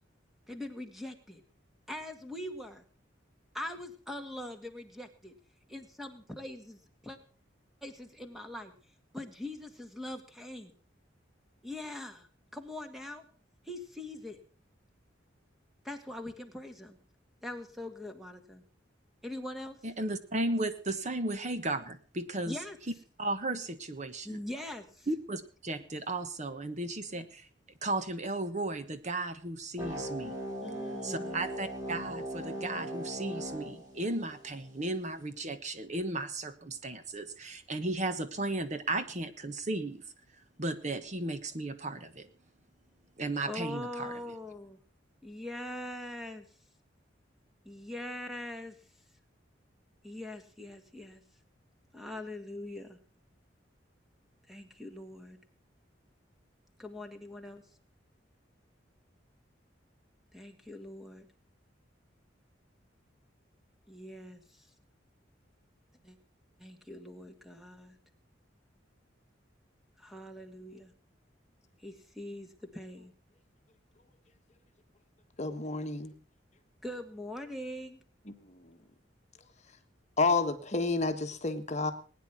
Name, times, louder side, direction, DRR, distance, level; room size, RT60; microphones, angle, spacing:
voice 1, 0.5-1.4 1.9-2.8 3.5-5.3 5.7-7.2 7.8-8.7 9.1-10.7 11.6-13.2 13.6-14.4 15.8-17.0 17.4-18.6 19.2-19.8 22.5-22.8 24.2-25.1 30.6-31.4 43.5-44.8 45.2-46.5 47.7-48.8 50.0-51.2 51.9-53.0 54.5-55.4 56.8-57.6 60.3-61.3 63.9-64.7 66.0-66.2 66.6-68.0 70.0-70.9 71.8-73.1 76.8-78.0, left 1 dB, ahead, 6 dB, 2.0 m, -42 dB
voice 2, 19.8-22.6 23.2-24.4 25.1-27.5 27.8-30.3 31.0-40.0 40.6-42.3 43.2-44.1, right 2 dB, 40° right, 10 dB, 1.3 m, -35 dB
sound 1, 29.8-34.8, equal, 20° right, 5.2 m, -39 dB
voice 3, 75.4-76.1 78.3-78.4 80.2-81.9, left 3 dB, 35° left, 8 dB, 1.4 m, -29 dB
20.5 x 9.9 x 6.0 m, 0.40 s
head